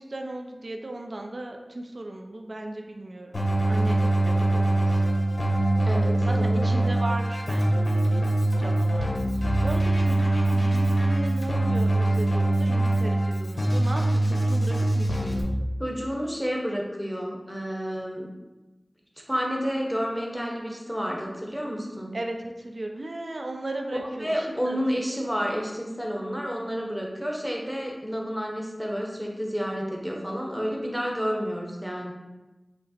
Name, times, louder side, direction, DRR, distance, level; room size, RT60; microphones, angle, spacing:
voice 1, 0.0-4.9 6.2-8.2 8.6-9.2 9.6-15.5 22.1-22.4 22.6-24.8, right 1 dB, 70° right, 3 dB, 0.4 m, -36 dB
Keyboard (musical), 3.3-15.4, right 1 dB, 80° left, 0.9 m, -23 dB
voice 2, 5.8-6.8 15.8-18.3 19.3-22.1 23.9-32.1, equal, 5° right, -1 dB, 0.9 m, -30 dB
5.8 x 2.0 x 4.2 m, 1.1 s
wide cardioid pair, 45°, 0 cm